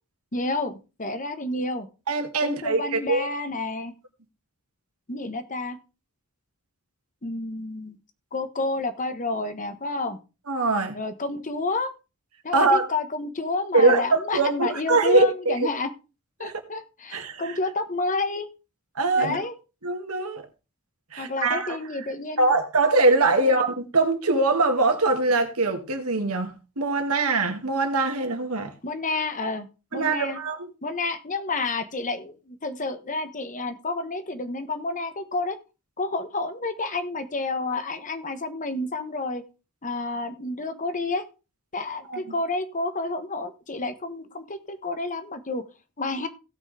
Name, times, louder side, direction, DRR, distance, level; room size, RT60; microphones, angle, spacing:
voice 1, 0.3-1.9 2.4-3.9 5.1-5.8 7.2-8.0 8.3-10.2 10.9-11.9 12.4-15.9 16.4-18.5 19.2-19.5 21.2-22.5 23.4-23.6 28.8-29.7 29.9-30.4 30.8-35.6 36.0-39.4 39.8-41.3 41.7-45.6 46.0-46.3, left 3 dB, 35° left, 1.2 m, -30 dB
voice 2, 2.1-3.3 10.5-11.0 12.5-12.9 13.7-15.5 16.4-16.5 17.1-17.6 19.0-19.4 19.8-20.4 21.1-21.8 22.4-28.7 29.9-30.6 42.1-42.2, right 3 dB, 75° right, 2.2 m, -22 dB
17.0 x 6.2 x 3.4 m
head